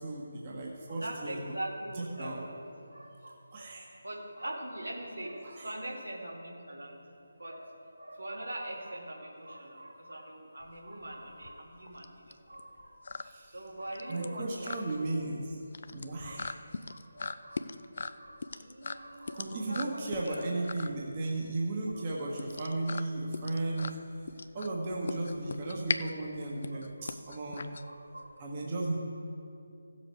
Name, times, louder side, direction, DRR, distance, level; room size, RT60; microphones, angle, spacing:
voice 1, 0.0-1.4 1.9-2.4 3.5-3.9 5.4-5.7 13.2-13.6 14.1-15.6 15.9-16.5 19.3-24.0 24.5-27.7 28.4-28.9, right 2 dB, 30° right, -2 dB, 1.4 m, -35 dB
voice 2, 0.9-2.6 2.9-7.0 7.4-13.0 13.5-15.1 16.2-16.5 16.9-17.7 18.1-20.6 21.9-22.1 26.7-27.1 27.8-28.4, right 1 dB, 80° right, -2 dB, 2.5 m, -43 dB
sound 1, 10.6-28.4, left 4 dB, 50° left, 0.4 m, -40 dB
15.5 x 7.4 x 4.6 m, 2.7 s
figure-of-eight pair, 155°, 0 cm